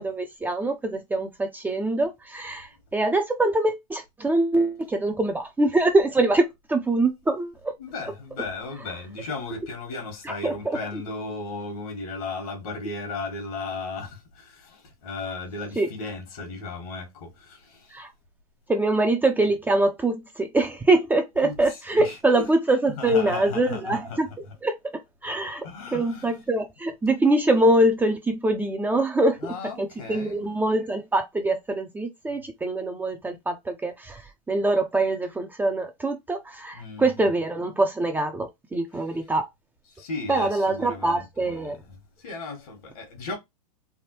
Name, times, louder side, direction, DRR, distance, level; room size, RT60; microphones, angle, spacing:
voice 1, 0.0-7.7 10.3-11.0 15.8-15.9 17.9-18.1 18.7-24.3 24.6-24.8 25.2-25.6 25.9-34.2 34.5-39.5 40.3-41.8, right 2 dB, 10° right, 0.5 m, -24 dB
voice 2, 7.8-18.0 21.4-22.5 22.9-24.5 25.6-26.3 29.4-30.5 36.7-37.0 39.9-43.4, left 3 dB, 70° left, 1.5 m, -36 dB
3.4 x 2.1 x 3.0 m
hypercardioid pair, 115°, 20 cm